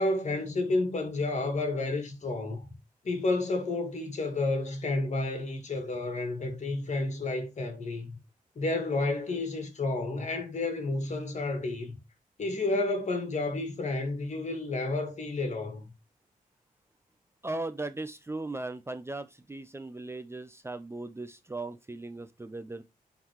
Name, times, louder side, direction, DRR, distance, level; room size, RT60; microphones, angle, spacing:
voice 1, 0.0-2.7 3.0-8.2 8.6-12.0 12.4-15.9, left 2 dB, 50° left, 2.1 m, -31 dB
voice 2, 17.4-22.8, right 2 dB, 15° right, 0.6 m, -38 dB
9.9 x 3.9 x 3.0 m
wide cardioid pair, 115°, 15 cm